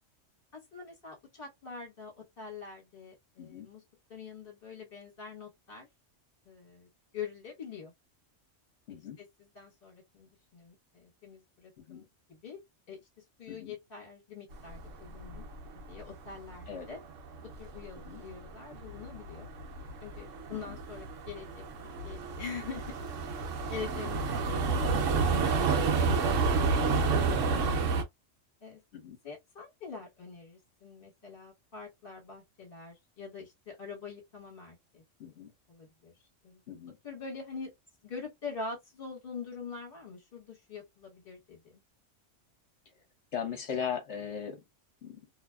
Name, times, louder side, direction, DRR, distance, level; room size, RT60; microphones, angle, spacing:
voice 1, 0.7-3.8 4.1-5.9 6.4-7.9 8.9-12.6 12.9-15.5 15.9-17.0 17.6-19.5 20.0-21.5 22.0-22.9 23.7-25.0 25.3-25.4 25.7-26.4 26.8-27.9 28.6-28.8 29.2-35.0 35.7-36.1 36.4-36.6 37.0-37.7 38.0-41.8, left 5 dB, 45° left, 1.5 m, -44 dB
sound 1, 14.5-16.8 17.0-28.0, right 4 dB, 85° right, 1.0 m, -30 dB
voice 2, 35.2-35.5 36.7-37.0 43.3-44.6 45.0-45.2, left 7 dB, 70° left, 1.1 m, -38 dB
2.7 x 2.2 x 2.2 m
omnidirectional pair, 1.3 m